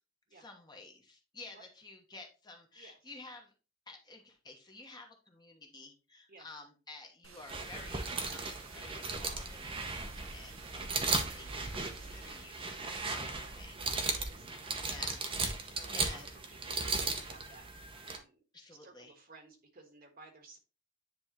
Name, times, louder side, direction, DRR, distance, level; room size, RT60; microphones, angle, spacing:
voice 1, 0.3-3.5 3.9-13.8 14.2-14.3 14.8-15.3 15.9-16.6 18.5-19.1, left 3 dB, 20° left, 2 dB, 1.1 m, -52 dB
voice 2, 2.8-3.1 6.3-6.5 13.7-14.9 15.6-17.7 18.0-18.4 18.8-20.6, right 3 dB, 45° right, 4 dB, 1.3 m, -57 dB
sound 1, 7.2-12.5, right 5 dB, 85° right, 0.9 m, -55 dB
sound 2, 7.5-18.2, right 3 dB, 25° right, 0.8 m, -37 dB
9.6 x 3.5 x 2.9 m, 0.32 s
head